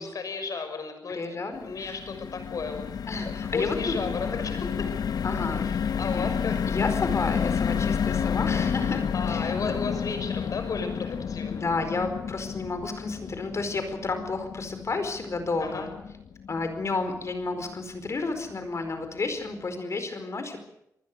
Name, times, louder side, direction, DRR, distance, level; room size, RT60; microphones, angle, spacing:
voice 1, 0.0-2.9 3.5-4.9 5.6-6.6 9.1-11.6 15.6-15.9, left 4 dB, 65° left, 8 dB, 6.3 m, -34 dB
voice 2, 1.1-2.0 3.1-4.0 5.2-5.7 6.0-6.3 6.6-9.7 11.5-15.9 16.5-20.6, left 3 dB, 50° left, 8 dB, 4.7 m, -31 dB
sound 1, 1.5-17.8 18.2-18.4 18.6-18.9, left 7 dB, 85° left, 1.1 m, -30 dB
27.0 x 20.0 x 6.8 m, 0.81 s
wide cardioid pair, 110°, 6 cm